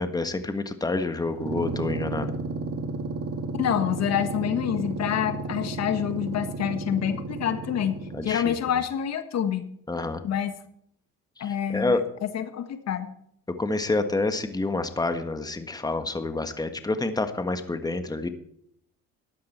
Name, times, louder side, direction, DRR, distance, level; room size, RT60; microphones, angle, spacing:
voice 1, 0.0-2.3 8.1-8.5 9.9-10.2 11.4-12.0 13.6-18.3, left 2 dB, 10° left, 8 dB, 1.5 m, -28 dB
sound 1, 1.3-8.6, right 3 dB, 50° right, 2.4 m, -33 dB
voice 2, 3.6-9.7 10.2-10.5 11.4-13.1, left 9 dB, 60° left, 10 dB, 1.5 m, -27 dB
13.5 x 11.5 x 4.4 m, 0.70 s
supercardioid pair, 80°, 31 cm